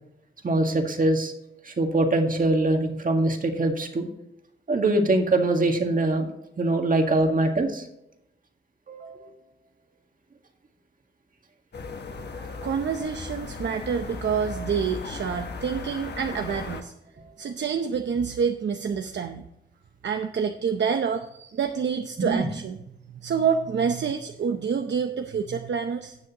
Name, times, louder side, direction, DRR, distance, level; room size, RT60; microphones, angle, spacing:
voice 1, 0.4-1.3 1.7-4.1 4.7-6.3 6.6-7.8 8.9-9.3 22.2-22.5, right 2 dB, 40° right, 4 dB, 1.8 m, -23 dB
sound 1, 11.7-16.8, left 4 dB, 55° left, 1.2 m, -37 dB
voice 2, 12.6-16.9 17.4-19.5 20.0-22.8 23.1-26.2, right 6 dB, 60° right, 6 dB, 0.7 m, -27 dB
17.5 x 6.3 x 2.9 m, 0.84 s
wide cardioid pair, 105°, 20 cm